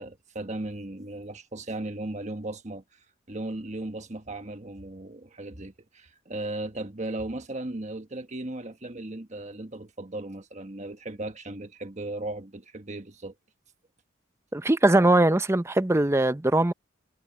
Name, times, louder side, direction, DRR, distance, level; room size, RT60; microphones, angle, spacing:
voice 1, 0.0-3.0 3.3-13.4, right 2 dB, 35° right, 1.4 m, -36 dB
voice 2, 14.5-16.7, right 1 dB, 15° right, 0.6 m, -21 dB
head